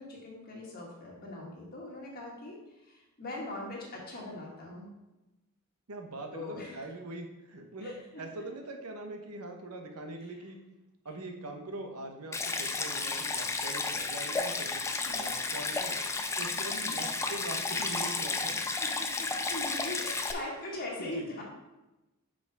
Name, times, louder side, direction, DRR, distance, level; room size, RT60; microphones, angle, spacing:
voice 1, 0.0-4.9 6.3-6.8 7.8-7.9 8.3-8.4 10.2-10.3 15.0-15.2 16.7-17.0 18.8-21.4, left 2 dB, 40° left, -3 dB, 1.6 m, -41 dB
voice 2, 5.9-10.6 11.0-16.0 16.4-18.6 21.1-21.2, right 2 dB, 85° right, 4 dB, 1.0 m, -42 dB
Stream, 12.3-20.3, left 3 dB, 15° left, 0.3 m, -32 dB
5.8 x 5.2 x 4.7 m, 1.0 s
head